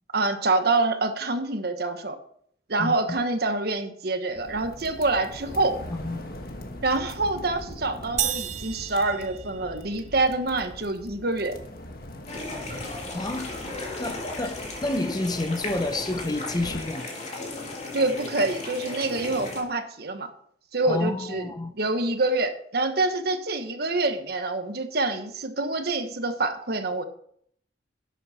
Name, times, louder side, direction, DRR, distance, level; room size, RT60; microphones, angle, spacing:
voice 1, 0.1-2.2 2.7-5.8 6.8-11.6 17.9-20.3 20.7-27.0, right 2 dB, 60° right, 1.2 m, -26 dB
voice 2, 2.8-3.2 5.9-6.3 13.1-13.5 14.0-17.3 20.8-21.7, left 2 dB, 20° left, 0.7 m, -30 dB
sound 1, 4.3-16.8, left 1 dB, 55° left, 1.4 m, -42 dB
sound 2, 8.2-10.1, right 10 dB, 40° right, 0.6 m, -32 dB
sound 3, 12.3-19.6, left 2 dB, 40° left, 2.4 m, -36 dB
11.5 x 8.4 x 4.3 m
head